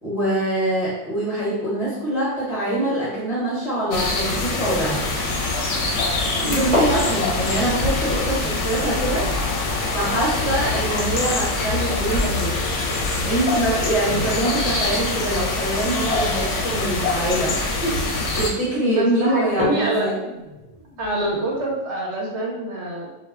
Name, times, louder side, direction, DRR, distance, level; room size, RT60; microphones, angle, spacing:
voice 1, 0.0-5.1 6.4-9.3 9.9-12.6 13.2-17.5 18.4-20.2, right 1 dB, 35° left, -7 dB, 1.0 m, -24 dB
sound 1, 3.9-18.5, left 2 dB, 80° left, 0.9 m, -24 dB
voice 2, 6.4-6.9 17.5-17.9 18.8-20.1 21.0-23.1, right 1 dB, 70° right, -2 dB, 0.9 m, -25 dB
sound 2, 6.7-13.0 13.3-13.4 13.8-14.1 15.1-15.3 15.9-16.0 16.6-16.7 17.0-17.4 18.0-18.3 18.7-18.8 19.4-21.8, left 1 dB, 30° right, 1.0 m, -32 dB
2.4 x 2.1 x 3.4 m, 1.0 s
omnidirectional pair, 1.2 m